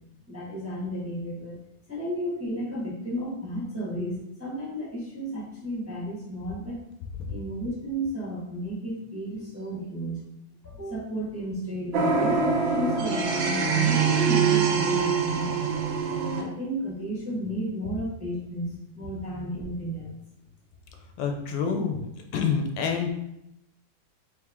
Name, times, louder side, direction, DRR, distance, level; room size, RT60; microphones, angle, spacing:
voice 1, 0.3-1.6 1.9-6.8 7.3-10.2 10.6-15.6 16.3-20.2, equal, 10° right, -6 dB, 0.9 m, -33 dB
sound 1, 11.9-16.4, right 5 dB, 85° right, 1.4 m, -24 dB
voice 2, 21.2-22.1 22.3-23.1, left 6 dB, 85° left, 4 dB, 1.3 m, -27 dB
3.4 x 3.4 x 3.5 m, 0.83 s
omnidirectional pair, 2.0 m